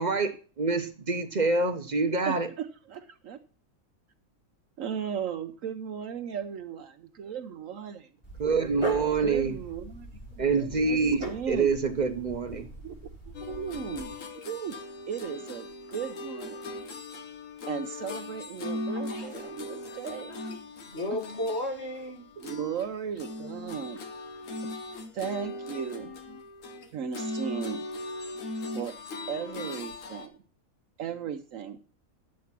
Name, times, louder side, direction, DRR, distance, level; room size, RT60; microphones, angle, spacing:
voice 1, 0.0-2.5 8.4-9.5 10.4-12.7, right 4 dB, 40° right, 0.8 m, -26 dB
voice 2, 2.2-3.4 4.8-8.1 9.2-11.7 12.8-13.0 13.3-14.1 14.5-14.7 15.1-16.6 17.7-20.4 22.4-24.0 25.1-26.4 26.9-27.8 28.7-28.9 29.3-30.4 31.0-31.8, right 8 dB, 70° right, 1.1 m, -36 dB
Dog, 8.2-14.1, equal, 20° left, 3.4 m, -41 dB
sound 1, 13.3-22.9 23.2-30.3, left 2 dB, 65° left, 1.6 m, -39 dB
voice 3, 18.9-19.3 19.6-20.0 20.3-20.4 20.9-22.2 28.3-28.4, left 1 dB, 50° left, 2.6 m, -35 dB
10.5 x 7.5 x 5.9 m
omnidirectional pair, 1.5 m